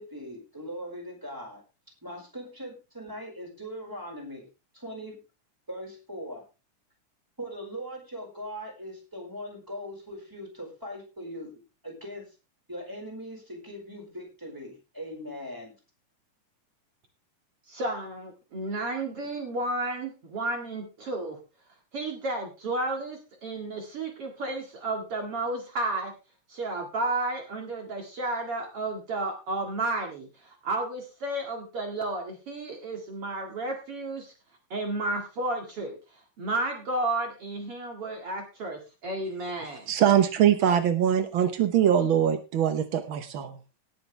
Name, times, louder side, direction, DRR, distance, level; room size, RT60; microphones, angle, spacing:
voice 1, 0.0-1.6 2.0-4.5 4.7-5.2 5.7-6.4 7.4-11.5 11.8-12.3 12.7-15.7, equal, 5° right, 1 dB, 4.7 m, -40 dB
voice 2, 17.7-21.4 21.9-26.1 26.5-34.3 34.7-39.9, right 2 dB, 50° right, 2 dB, 2.8 m, -32 dB
voice 3, 39.9-43.6, right 9 dB, 75° right, 9 dB, 1.1 m, -23 dB
18.0 x 8.7 x 3.3 m, 0.31 s
omnidirectional pair, 3.6 m